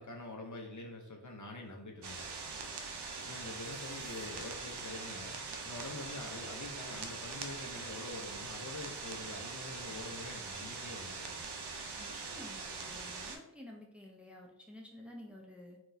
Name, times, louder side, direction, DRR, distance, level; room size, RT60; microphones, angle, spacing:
voice 1, 0.0-2.3 3.2-5.3 5.6-11.5, left 2 dB, 50° left, 1 dB, 0.6 m, -46 dB
sound 1, 2.0-13.4, right 4 dB, 80° right, 0.5 m, -43 dB
sound 2, 2.4-4.3, equal, 15° left, 0.9 m, -61 dB
voice 2, 12.0-15.8, left 1 dB, 5° right, 0 dB, 0.6 m, -51 dB
3.7 x 2.3 x 2.6 m, 0.78 s
wide cardioid pair, 45°, 40 cm